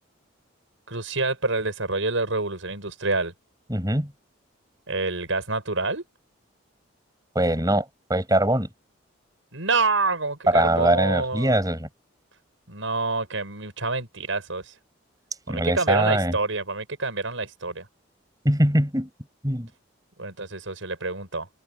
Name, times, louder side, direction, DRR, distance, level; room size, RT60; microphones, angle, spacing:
voice 1, 0.9-3.3 4.9-6.0 9.5-11.6 12.7-14.8 15.5-17.9 20.2-21.5, right 3 dB, 75° right, 6.3 m, -27 dB
voice 2, 3.7-4.1 7.3-7.8 8.1-8.7 10.5-11.9 15.5-16.3 18.4-19.1 19.4-19.7, right 1 dB, 20° right, 6.1 m, -22 dB
head